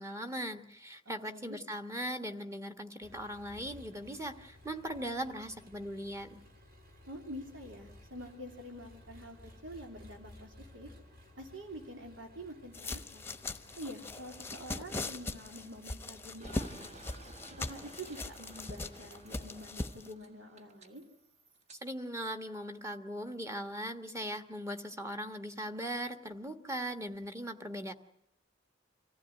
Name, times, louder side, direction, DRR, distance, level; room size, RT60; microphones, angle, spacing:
voice 1, 0.0-6.4 21.8-27.9, equal, 15° right, 7 dB, 1.4 m, -39 dB
voice 2, 1.3-1.6 7.1-10.9 11.4-13.2 13.8-17.0 17.6-21.0, equal, 80° right, 3 dB, 2.9 m, -47 dB
Engine, 3.0-19.7, left 1 dB, 50° right, 3.8 m, -57 dB
sound 1, 12.7-20.1, left 2 dB, 10° left, 1.0 m, -40 dB
sound 2, 16.4-21.8, right 2 dB, 35° right, 1.5 m, -55 dB
25.0 x 15.0 x 9.1 m, 0.79 s
head